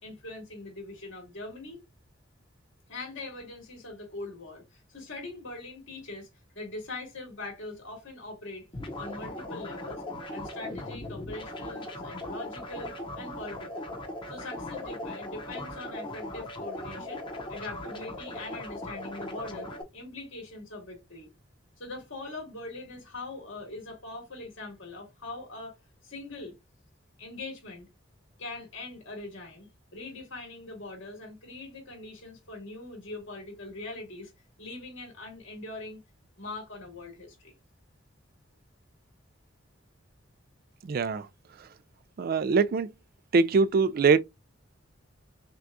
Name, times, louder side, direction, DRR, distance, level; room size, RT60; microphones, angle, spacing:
voice 1, 0.0-1.8 2.9-6.3 6.5-8.7 9.0-10.0 10.3-13.9 14.3-21.3 21.8-26.5 27.2-27.9 28.4-34.3 34.6-36.0 36.4-37.5, left 2 dB, 80° left, 2.9 m, -42 dB
sound 1, 8.7-19.8, left 1 dB, 25° left, 0.9 m, -39 dB
voice 2, 40.9-41.2 42.2-42.9 43.3-44.2, right 4 dB, 50° right, 0.3 m, -22 dB
5.9 x 2.3 x 2.6 m
head